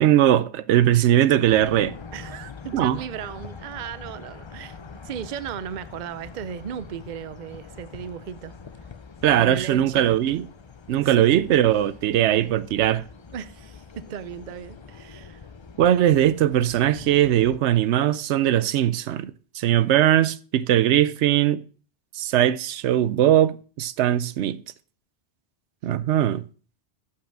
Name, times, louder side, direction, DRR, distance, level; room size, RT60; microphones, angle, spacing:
voice 1, 0.0-1.9 2.7-3.0 9.2-10.4 10.9-13.1 15.8-21.6 22.1-24.6 25.8-26.4, right 12 dB, 85° right, 0.9 m, -20 dB
sound 1, 1.4-17.6, left 5 dB, 35° left, 0.5 m, -44 dB
voice 2, 2.1-4.8 5.0-8.5 9.3-10.2 10.9-11.4 13.3-15.5 25.8-26.0, right 8 dB, 50° right, 0.6 m, -36 dB
7.5 x 5.6 x 6.0 m
omnidirectional pair, 1.1 m